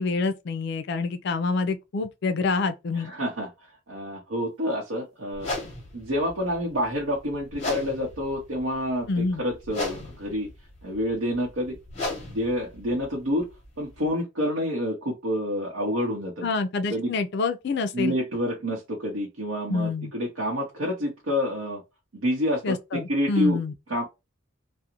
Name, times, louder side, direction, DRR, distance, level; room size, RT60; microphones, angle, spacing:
voice 1, 0.0-3.1 9.1-9.4 16.4-18.1 19.7-20.1 22.6-23.7, left 3 dB, 55° left, 0.4 m, -27 dB
voice 2, 2.9-5.5 5.9-10.5 10.8-11.8 12.3-13.5 13.8-16.5 16.9-17.1 17.9-21.8 22.1-23.6 23.9-24.0, equal, 80° right, 0.7 m, -28 dB
sound 1, 5.3-14.1, left 2 dB, 35° left, 0.9 m, -37 dB
2.4 x 2.0 x 2.9 m
head